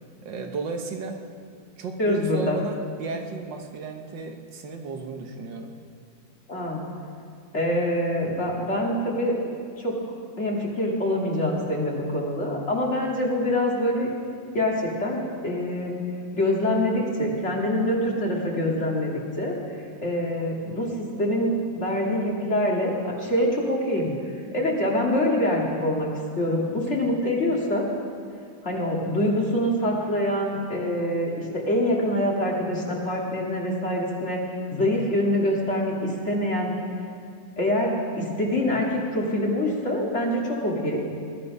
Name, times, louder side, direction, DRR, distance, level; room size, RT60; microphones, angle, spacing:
voice 1, 0.2-1.2 1.8-5.8, right 4 dB, 75° right, 4 dB, 1.8 m, -34 dB
voice 2, 2.0-2.6 6.5-6.8 7.5-9.3 9.8-10.0 10.4-14.1 14.5-16.0 16.3-19.6 20.0-24.1 24.5-26.1 26.4-27.9 28.6-34.4 34.7-36.7 37.6-41.0, left 1 dB, 40° left, -2 dB, 2.5 m, -25 dB
20.5 x 11.5 x 5.4 m, 2.2 s
omnidirectional pair, 2.0 m